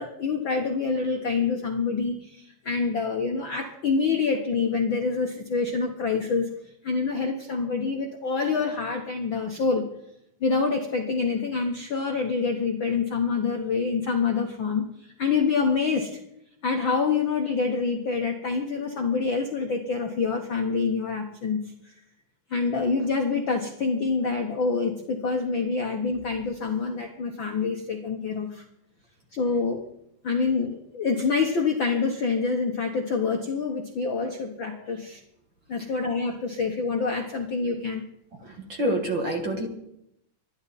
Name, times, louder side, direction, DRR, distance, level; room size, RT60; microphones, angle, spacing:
voice 1, 0.0-6.5 6.8-9.9 10.4-16.2 16.6-21.9 22.5-28.6 29.3-29.8 30.2-35.2 35.7-38.0, left 4 dB, 85° left, 2 dB, 1.0 m, -26 dB
voice 2, 38.4-39.7, right 1 dB, 45° right, 2 dB, 1.8 m, -28 dB
24.5 x 11.0 x 4.2 m, 0.79 s
omnidirectional pair, 4.2 m